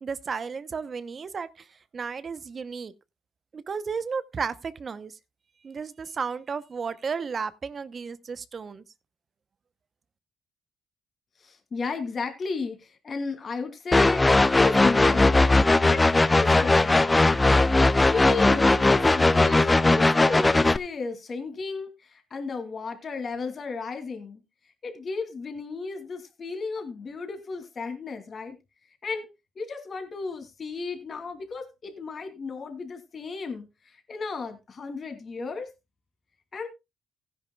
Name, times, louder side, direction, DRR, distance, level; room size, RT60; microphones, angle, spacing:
voice 1, 0.0-1.7 1.9-2.9 3.5-5.1 5.6-8.8, right 5 dB, 40° right, 0.8 m, -33 dB
voice 2, 11.4-15.5 15.8-16.1 16.3-17.2 18.1-24.4 24.8-28.6 29.0-29.3 29.6-35.7 36.5-36.7, left 4 dB, 45° left, 2.8 m, -34 dB
sound 1, 13.9-20.8, left 2 dB, 20° left, 0.5 m, -19 dB
16.0 x 10.5 x 2.3 m
cardioid pair, 90°, 0 cm